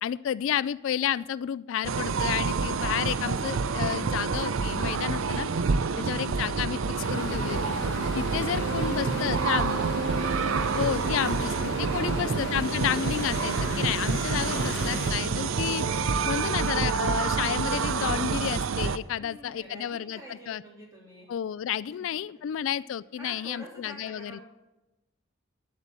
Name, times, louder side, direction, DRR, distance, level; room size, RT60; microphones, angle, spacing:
voice 1, 0.0-5.5 6.0-7.7 8.1-9.8 10.8-15.8 16.2-20.2 20.5-20.6 21.3-24.4, left 9 dB, 75° left, 17 dB, 0.3 m, -31 dB
sound 1, 1.8-19.0, right 5 dB, 80° right, 0.5 m, -28 dB
sound 2, 7.0-15.1, left 2 dB, 55° left, 1.5 m, -37 dB
voice 2, 8.6-9.8 11.8-12.6 19.1-21.3 21.8-22.4 23.2-24.4, right 1 dB, 15° right, -3 dB, 3.1 m, -47 dB
sound 3, 10.6-17.4, left 1 dB, 20° left, 2.4 m, -52 dB
10.5 x 8.1 x 7.3 m, 0.99 s
head